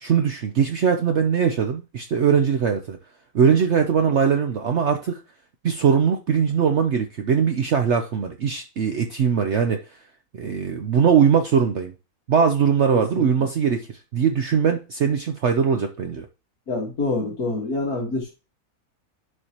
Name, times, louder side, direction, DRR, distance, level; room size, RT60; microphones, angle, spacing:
voice 1, 0.0-3.0 3.3-5.2 5.6-9.8 10.3-11.9 12.3-13.9 14.1-16.3, right 7 dB, 55° right, 0.8 m, -21 dB
voice 2, 16.7-18.3, left 3 dB, 70° left, 2.2 m, -26 dB
11.0 x 4.6 x 2.9 m
omnidirectional pair, 1.6 m